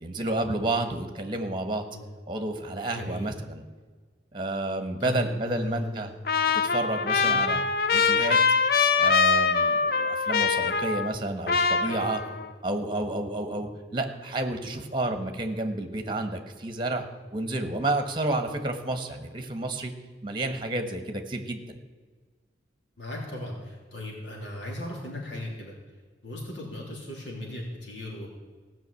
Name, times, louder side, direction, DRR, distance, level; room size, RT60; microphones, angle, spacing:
voice 1, 0.0-1.8 2.3-3.6 4.3-6.1 6.5-7.6 7.9-8.4 9.0-12.2 12.6-17.0 17.3-19.9 20.2-21.8, right 2 dB, 25° right, 7 dB, 1.3 m, -30 dB
voice 2, 2.9-3.3 5.0-6.1 7.2-7.4 11.8-12.4 23.0-25.7 26.2-28.3, left 1 dB, 85° left, -1 dB, 3.3 m, -36 dB
Trumpet, 6.3-11.2 11.5-12.5, left 5 dB, 55° left, 0.6 m, -23 dB
16.0 x 6.0 x 8.3 m, 1.4 s
head